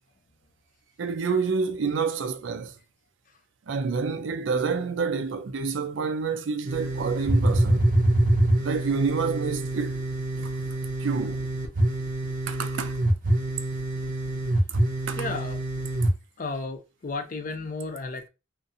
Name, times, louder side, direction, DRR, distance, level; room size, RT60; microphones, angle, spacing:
voice 1, 1.0-2.7 3.7-7.9 8.6-10.1 10.4-11.5 12.5-13.0 14.7-14.8 15.1-15.2, right 5 dB, 90° right, 0.4 m, -28 dB
sound 1, 6.7-16.1, right 1 dB, 45° right, 0.7 m, -25 dB
voice 2, 15.2-15.6 16.4-18.3, left 3 dB, 45° left, 0.5 m, -33 dB
2.5 x 2.5 x 2.6 m
head